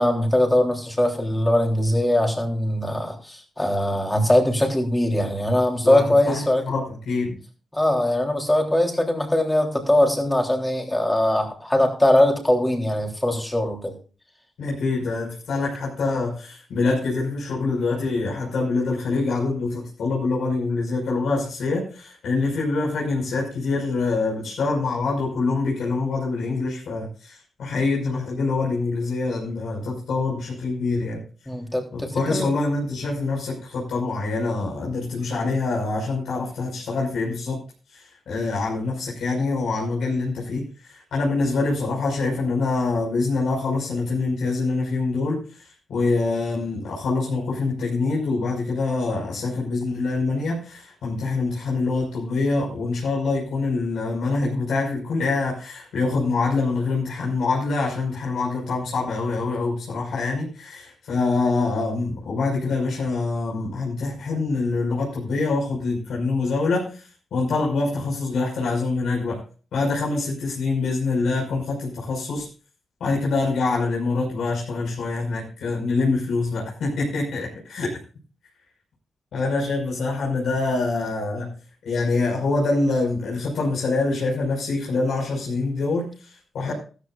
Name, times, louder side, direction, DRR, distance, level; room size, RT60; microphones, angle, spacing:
voice 1, 0.0-6.6 7.7-13.9 31.5-32.5, left 1 dB, 10° left, 2 dB, 3.5 m, -21 dB
voice 2, 5.8-7.4 14.6-31.2 31.9-37.6 37.9-69.4 69.7-72.5 73.0-78.0 79.3-81.5 81.8-86.7, left 3 dB, 75° left, -4 dB, 5.7 m, -25 dB
14.5 x 14.0 x 2.5 m, 0.36 s
cardioid pair, 120°, 0 cm